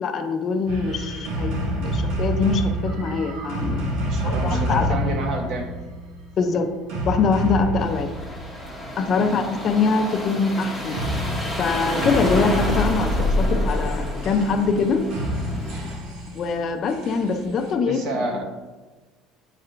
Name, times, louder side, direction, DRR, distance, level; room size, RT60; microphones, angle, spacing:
voice 1, 0.0-3.9 4.2-4.9 6.4-6.7 7.1-8.1 9.0-11.1 11.6-15.0 16.3-18.0, left 4 dB, 35° left, 6 dB, 0.4 m, -23 dB
sound 1, 0.7-9.1 10.9-17.7, equal, 70° right, 1.2 m, -27 dB
voice 2, 3.9-5.7 9.2-9.4 17.8-18.4, right 2 dB, 55° right, 3 dB, 1.0 m, -29 dB
sound 2, 7.8-16.0, equal, 10° right, 0.8 m, -31 dB
8.8 x 4.4 x 2.5 m, 1.2 s
cardioid pair, 170°, 0 cm